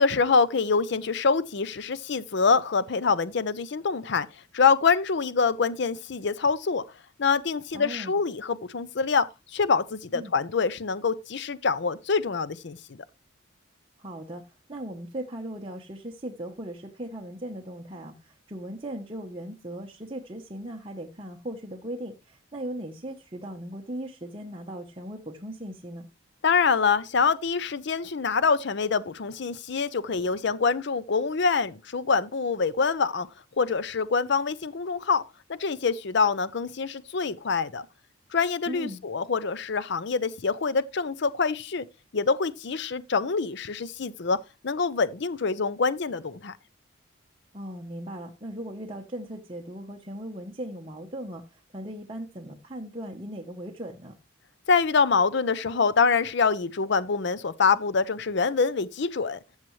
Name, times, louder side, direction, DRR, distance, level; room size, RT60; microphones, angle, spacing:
voice 1, 0.0-4.3 4.5-6.8 7.2-9.2 9.5-13.0 26.4-33.3 33.6-35.2 35.5-37.8 38.3-41.8 42.1-44.4 44.6-46.5 54.7-59.4, left 5 dB, 55° left, 0.6 m, -25 dB
voice 2, 7.7-8.1 10.1-10.3 14.0-26.1 38.7-39.0 47.5-54.2, right 1 dB, 25° right, 1.0 m, -38 dB
14.0 x 7.2 x 3.2 m
head